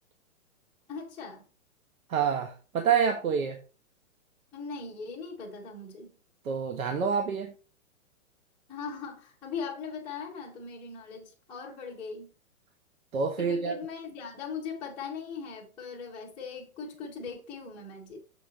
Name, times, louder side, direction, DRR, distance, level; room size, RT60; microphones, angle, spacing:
voice 1, 0.9-1.4 4.5-6.2 8.7-12.3 13.4-18.2, left 5 dB, 5° left, 0.6 m, -39 dB
voice 2, 2.1-3.6 6.4-7.5 13.1-13.8, right 6 dB, 80° right, 1.4 m, -27 dB
7.2 x 5.4 x 3.8 m
hypercardioid pair, 165°, 41 cm